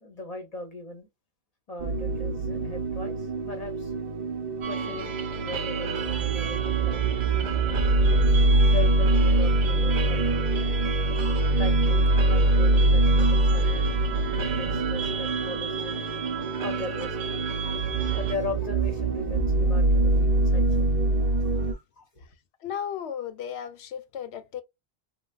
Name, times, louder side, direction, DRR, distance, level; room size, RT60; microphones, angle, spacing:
voice 1, 0.0-1.1 1.7-3.9 4.7-7.8 8.7-10.7 11.5-13.9 14.3-20.9 21.3-22.3, left 3 dB, 40° left, 0.7 m, -39 dB
sound 1, 1.8-21.7, right 2 dB, 50° right, 0.6 m, -24 dB
sound 2, 4.6-18.3, right 7 dB, 80° right, 0.9 m, -35 dB
voice 2, 22.6-24.6, left 8 dB, 80° left, 0.8 m, -35 dB
3.2 x 2.2 x 2.3 m
omnidirectional pair, 1.1 m